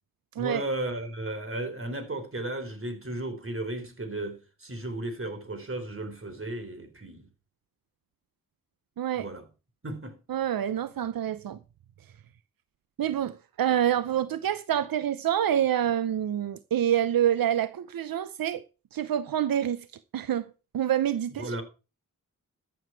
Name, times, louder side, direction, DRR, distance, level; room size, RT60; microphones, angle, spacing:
voice 1, 0.4-7.3 9.2-9.4 9.8-10.2 21.4-21.6, right 1 dB, 40° right, 4.2 m, -34 dB
voice 2, 9.0-9.3 10.3-11.6 13.0-18.6 18.9-19.9 20.1-20.5 20.7-21.6, right 10 dB, 85° right, 0.7 m, -27 dB
14.0 x 7.9 x 4.7 m
cardioid pair, 55°, 34 cm